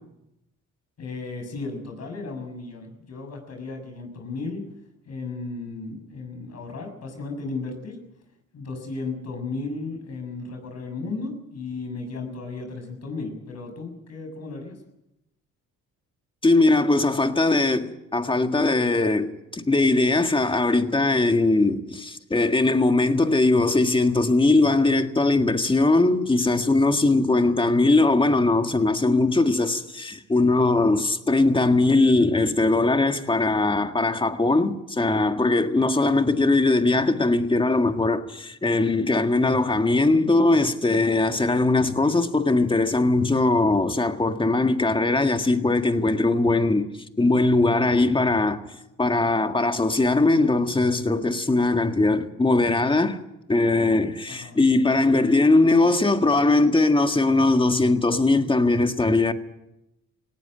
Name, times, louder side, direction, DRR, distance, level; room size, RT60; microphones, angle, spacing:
voice 1, 1.0-4.6 5.0-8.0 8.5-14.8 54.3-54.6, left 3 dB, 60° left, 6.8 m, -34 dB
voice 2, 16.4-46.9 47.2-48.6 49.0-53.2 53.5-59.3, left 2 dB, 15° left, 1.7 m, -20 dB
18.5 x 17.5 x 8.9 m
cardioid pair, 90°, 30 cm